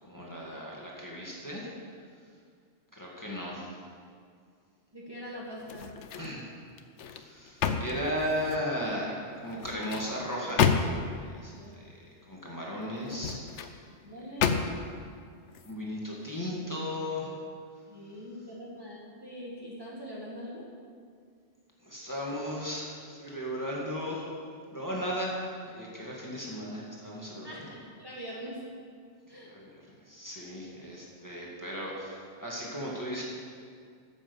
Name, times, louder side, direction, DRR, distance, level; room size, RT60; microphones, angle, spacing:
voice 1, 0.0-1.7 2.9-3.7 6.2-6.5 7.1-10.8 11.2-13.8 15.6-17.3 21.8-24.3 24.7-27.7 29.5-33.2, equal, 15° left, -5 dB, 1.9 m, -36 dB
voice 2, 4.9-5.9 11.6-11.7 13.9-14.8 17.9-20.6 27.4-28.6 29.3-29.5, equal, 20° right, -5 dB, 1.5 m, -43 dB
sound 1, 5.6-6.4 6.8-8.7 9.5-11.2 13.0-13.7 14.4-15.0 15.5-15.7, left 6 dB, 80° left, 1.0 m, -30 dB
10.5 x 7.3 x 6.9 m, 2.2 s
omnidirectional pair, 1.2 m